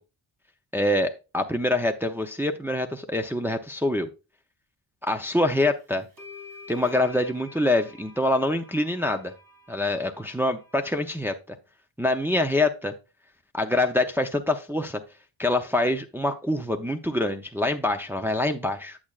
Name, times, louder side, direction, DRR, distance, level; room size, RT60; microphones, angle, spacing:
voice 1, 0.7-4.1 5.0-6.1 6.7-9.3 9.7-11.6 12.0-12.9 13.5-15.0 15.4-19.0, left 1 dB, 5° right, 4 dB, 0.6 m, -25 dB
sound 1, 5.6-5.7 6.2-11.0, left 3 dB, 45° right, 3.5 m, -48 dB
8.6 x 7.2 x 2.4 m, 0.30 s
cardioid pair, 95°, 47 cm